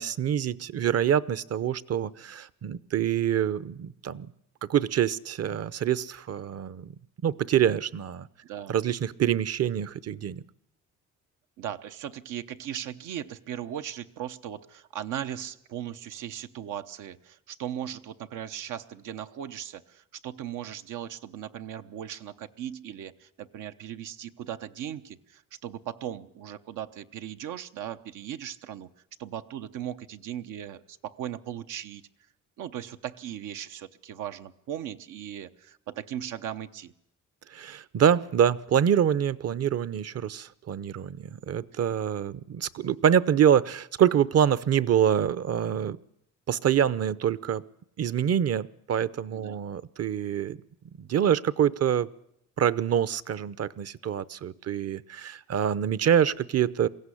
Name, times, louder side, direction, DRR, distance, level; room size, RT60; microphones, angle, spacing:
voice 1, 0.0-4.3 4.7-6.9 7.2-8.3 8.7-10.4 37.5-46.0 46.5-47.6 48.0-50.6 51.0-52.1 52.6-56.9, right 9 dB, 55° right, 18 dB, 0.8 m, -25 dB
voice 2, 8.4-8.7 11.6-28.9 29.2-32.0 32.6-36.9 49.3-49.6, right 10 dB, 85° right, 9 dB, 1.0 m, -38 dB
22.5 x 16.0 x 9.9 m, 0.79 s
cardioid pair, 90°, 30 cm